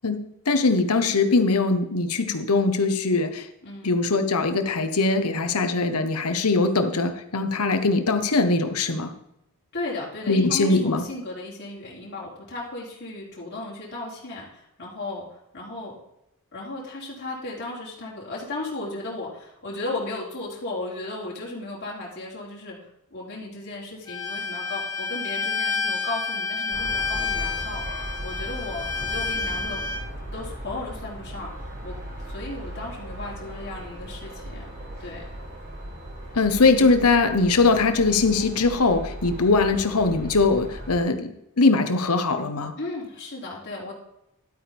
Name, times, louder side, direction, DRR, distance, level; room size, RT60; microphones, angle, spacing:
voice 1, 0.0-3.5 3.8-9.1 10.3-11.0 36.3-42.7, left 3 dB, 85° left, 8 dB, 1.1 m, -21 dB
voice 2, 3.6-4.0 9.7-15.9 16.5-29.8 30.3-31.9 32.3-34.7 35.0-35.2 42.8-43.9, left 2 dB, 50° left, -5 dB, 3.0 m, -35 dB
Bowed string instrument, 24.1-30.0, left 4 dB, 15° left, 3.5 m, -29 dB
sound 1, 26.7-41.0, equal, 55° right, 4.7 m, -37 dB
12.0 x 8.8 x 3.5 m, 0.80 s
head